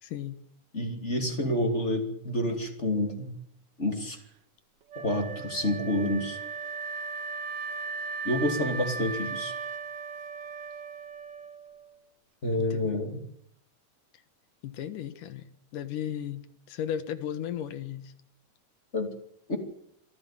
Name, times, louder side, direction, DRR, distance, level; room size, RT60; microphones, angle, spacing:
voice 1, 0.0-0.4 12.7-13.0 14.6-15.5 15.7-18.1, left 10 dB, 80° left, 12 dB, 3.0 m, -35 dB
voice 2, 0.7-3.3 3.8-4.2 5.0-6.4 8.2-9.5 12.4-13.2 18.9-19.1 19.5-19.6, left 1 dB, 25° left, 5 dB, 2.5 m, -28 dB
Wind instrument woodwind instrument, 4.9-11.9, right 5 dB, 70° right, 1.0 m, -37 dB
25.0 x 12.5 x 8.9 m, 0.71 s
omnidirectional pair, 3.7 m